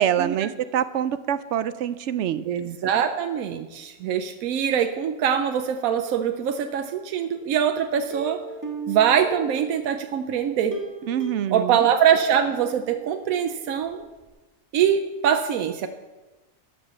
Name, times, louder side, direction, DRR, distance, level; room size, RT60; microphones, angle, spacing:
voice 1, 0.0-2.4 11.1-11.9, right 10 dB, 65° right, 14 dB, 0.8 m, -25 dB
voice 2, 2.4-8.4 8.9-10.8 11.5-14.0 14.7-15.9, right 8 dB, 85° right, 7 dB, 1.1 m, -23 dB
Plucked string instrument, 8.1-10.1 10.7-13.5 13.8-13.9 14.3-14.4, right 4 dB, 15° right, 1.5 m, -37 dB
12.5 x 5.2 x 7.0 m, 1.1 s
omnidirectional pair, 1.4 m